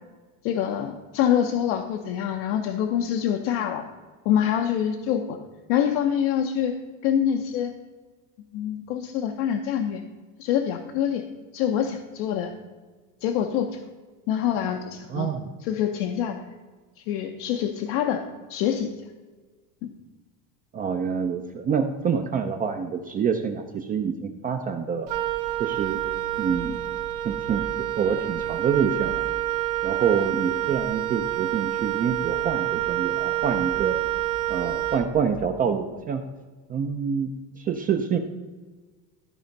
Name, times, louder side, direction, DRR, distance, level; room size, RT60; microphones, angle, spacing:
voice 1, 0.4-3.8 4.2-5.4 5.7-6.7 7.0-7.7 8.5-10.0 10.4-11.2 11.5-12.5 13.2-13.8 14.3-15.3 15.6-16.4 17.1-18.2 18.5-18.9 19.8-19.9, left 9 dB, 80° left, 3 dB, 0.9 m, -25 dB
voice 2, 15.1-15.5 20.7-25.1 25.6-26.0 26.4-26.8 27.2-27.7 28.0-29.2 29.8-34.0 34.5-36.2 36.7-37.3 37.6-38.2, right 6 dB, 25° right, 6 dB, 0.4 m, -26 dB
Wind instrument woodwind instrument, 25.1-35.5, right 14 dB, 75° right, 1.0 m, -28 dB
13.0 x 4.4 x 5.2 m, 1.4 s
cardioid pair, 160°, 39 cm